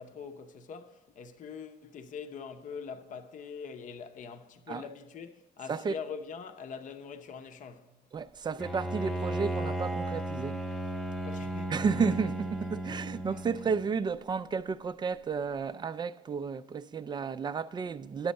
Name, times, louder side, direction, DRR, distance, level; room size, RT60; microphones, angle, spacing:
voice 1, 0.0-7.9 11.2-12.3 12.9-13.0, left 6 dB, 50° left, 0.7 m, -43 dB
voice 2, 8.1-10.6 11.7-18.3, right 5 dB, 25° right, 0.3 m, -32 dB
Bowed string instrument, 8.6-13.9, right 1 dB, 5° left, 0.7 m, -35 dB
10.0 x 7.6 x 5.3 m
cardioid pair, 110°, 17 cm